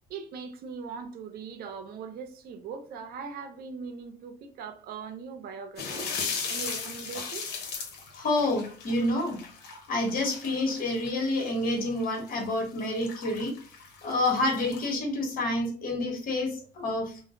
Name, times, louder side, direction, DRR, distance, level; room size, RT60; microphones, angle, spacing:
voice 1, 0.1-7.5, right 5 dB, 65° right, 0.5 m, -40 dB
sound 1, 5.8-14.9, left 5 dB, 75° left, 0.8 m, -38 dB
voice 2, 8.1-9.4 9.9-13.5 14.0-17.2, left 2 dB, 55° left, 1.2 m, -28 dB
2.5 x 2.0 x 3.7 m
cardioid pair, 110°, 17 cm